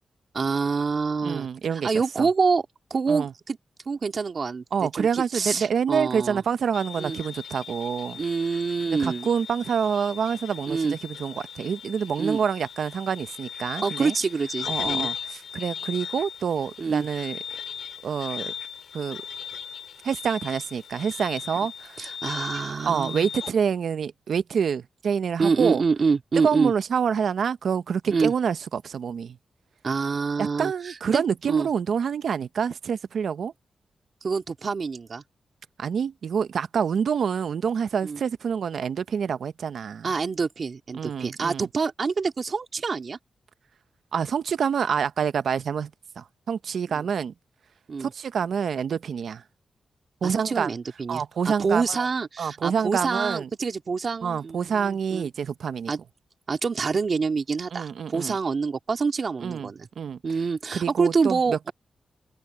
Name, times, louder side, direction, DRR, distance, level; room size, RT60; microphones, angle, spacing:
voice 1, 0.3-1.5 1.8-3.6 3.9-4.6 4.9-6.4 7.0-7.2 8.1-9.3 10.7-11.0 12.2-12.4 13.8-15.1 16.8-17.1 21.6-21.7 22.0-23.3 25.4-26.7 28.1-28.3 29.8-31.2 31.5-31.7 34.2-35.2 38.0-38.2 40.0-43.2 46.9-47.0 47.9-48.1 50.2-55.3 55.9-56.0 56.5-59.9 60.2-61.7, right 5 dB, 50° right, 2.3 m, -26 dB
voice 2, 1.2-1.9 2.2-2.3 3.1-3.3 4.7-8.2 9.0-14.1 14.7-17.4 18.0-18.5 18.9-19.2 20.0-22.0 22.8-25.8 26.4-29.4 30.4-33.5 35.8-40.1 41.0-41.7 44.1-45.9 46.2-47.3 48.0-49.4 50.2-50.7 51.1-52.0 52.4-53.5 54.2-55.9 57.7-58.4 59.4-59.7 60.0-60.2 60.7-61.7, right 7 dB, 75° right, 0.7 m, -27 dB
sound 1, 6.7-23.5, left 8 dB, 85° left, 4.7 m, -37 dB
open air
cardioid pair, 85°, 0 cm